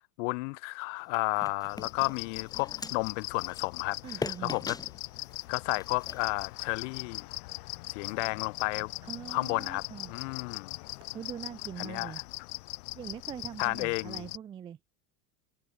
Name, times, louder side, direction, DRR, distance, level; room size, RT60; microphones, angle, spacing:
voice 1, 0.2-4.8 5.5-7.3 7.9-8.9 9.3-9.8 10.1-10.8 11.8-12.1 13.6-14.3, left 29 dB, 55° left, 0.5 m, -32 dB
sound 1, 1.0-7.1, left 4 dB, 10° left, 2.1 m, -43 dB
sound 2, 1.7-14.4, left 22 dB, 80° left, 1.3 m, -41 dB
voice 2, 4.0-4.6 9.0-10.1 11.1-12.2 12.9-14.8, right 9 dB, 10° right, 0.4 m, -42 dB
supercardioid pair, 165°, 44 cm